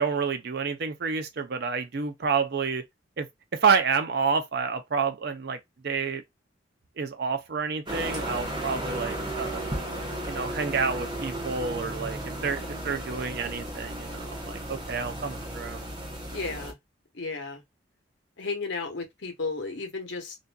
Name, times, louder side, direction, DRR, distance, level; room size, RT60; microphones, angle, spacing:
voice 1, 0.0-2.8 3.2-3.3 3.5-5.6 5.8-6.2 7.0-9.6 10.3-15.8, right 5 dB, 55° right, 0.5 m, -29 dB
sound 1, 7.9-16.7, right 1 dB, 25° right, 0.7 m, -34 dB
voice 2, 16.3-16.8 17.1-17.6 18.4-20.4, left 4 dB, 70° left, 0.9 m, -33 dB
2.5 x 2.5 x 2.2 m
head